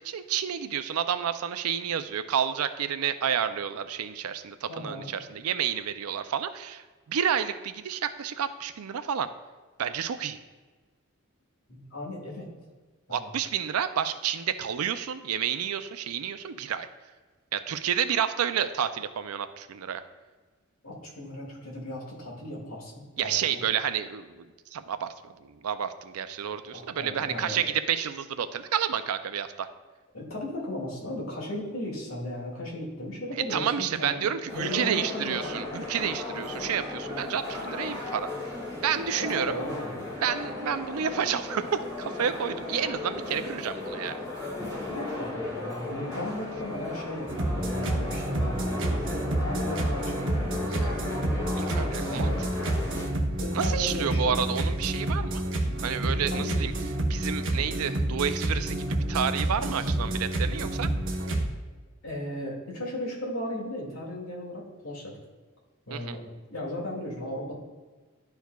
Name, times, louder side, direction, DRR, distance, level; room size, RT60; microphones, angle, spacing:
voice 1, 0.0-9.3 9.8-10.4 13.1-16.9 17.5-20.0 23.2-25.3 25.6-29.7 33.5-38.3 38.8-39.5 40.2-44.2 51.5-52.7 53.5-55.4 55.8-56.7 57.1-60.9 65.9-66.2, right 8 dB, 85° right, 11 dB, 0.4 m, -30 dB
voice 2, 4.7-5.1 11.7-12.5 13.1-13.3 20.8-23.6 26.7-27.7 30.1-34.3 34.5-35.6 39.2-40.1 44.9-50.9 52.1-52.3 53.4-54.6 56.3-56.6 62.0-65.1 65.9-67.5, left 1 dB, 75° left, -3 dB, 2.0 m, -36 dB
sound 1, 34.5-53.1, left 2 dB, 20° left, 2.0 m, -36 dB
sound 2, 47.3-61.5, right 1 dB, 60° right, 0.9 m, -29 dB
11.5 x 4.6 x 2.3 m, 1.4 s
head